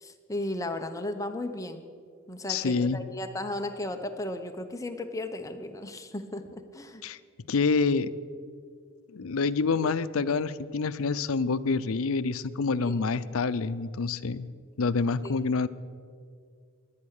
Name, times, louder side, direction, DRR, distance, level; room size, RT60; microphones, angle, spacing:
voice 1, 0.0-1.8 2.3-7.0 12.8-13.0 15.2-15.4, left 1 dB, 15° left, 6 dB, 0.8 m, -35 dB
voice 2, 2.5-3.0 7.0-7.2 7.5-8.1 9.1-14.5 14.8-15.7, left 4 dB, 80° left, 14 dB, 0.6 m, -27 dB
17.5 x 11.5 x 6.6 m, 2.2 s
head